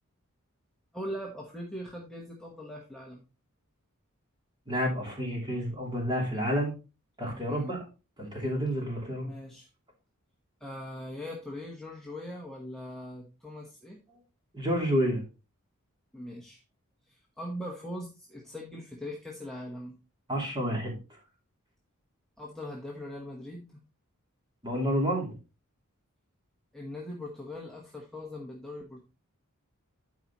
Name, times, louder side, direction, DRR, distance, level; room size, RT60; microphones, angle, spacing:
voice 1, 0.9-3.2 7.5-7.7 9.2-9.7 10.6-14.0 16.1-16.6 17.1-19.9 22.4-23.8 26.7-29.0, left 1 dB, ahead, -3 dB, 1.2 m, -41 dB
voice 2, 4.7-6.7 7.2-7.8 8.2-9.3 14.5-15.2 20.3-21.0 24.6-25.4, equal, 20° right, -1 dB, 2.9 m, -29 dB
12.0 x 4.9 x 3.0 m, 0.31 s
head